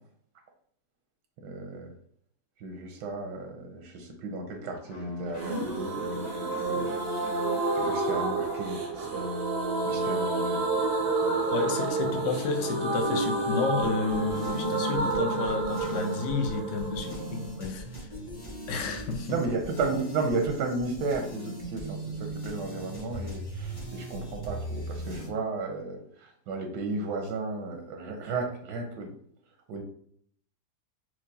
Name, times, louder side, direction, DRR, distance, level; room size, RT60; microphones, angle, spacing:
voice 1, 1.4-1.9 2.6-7.0 7.7-9.1 9.8-11.5 19.3-29.1 29.7-29.8, right 3 dB, 90° right, 3 dB, 1.3 m, -34 dB
sound 1, 4.8-10.6, left 3 dB, 45° left, 1.4 m, -40 dB
sound 2, 5.4-19.0 19.3-19.4 19.6-19.7, right 2 dB, 65° right, 0.6 m, -30 dB
voice 2, 11.5-17.8 18.7-19.3, left 4 dB, 70° left, 4 dB, 0.7 m, -31 dB
sound 3, 13.8-25.3, right 1 dB, 25° left, 0.5 m, -39 dB
4.5 x 2.4 x 2.6 m, 0.62 s
omnidirectional pair, 1.8 m